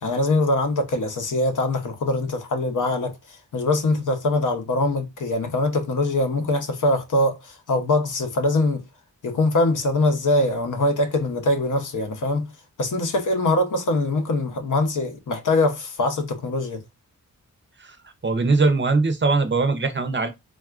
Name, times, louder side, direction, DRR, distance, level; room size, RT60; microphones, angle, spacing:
voice 1, 0.0-3.1 3.5-8.8 9.2-12.5 12.8-16.8, left 2 dB, 60° left, 0.7 m, -23 dB
voice 2, 18.2-20.3, right 3 dB, 35° right, 0.5 m, -21 dB
3.4 x 2.3 x 2.3 m
cardioid pair, 70°, 35 cm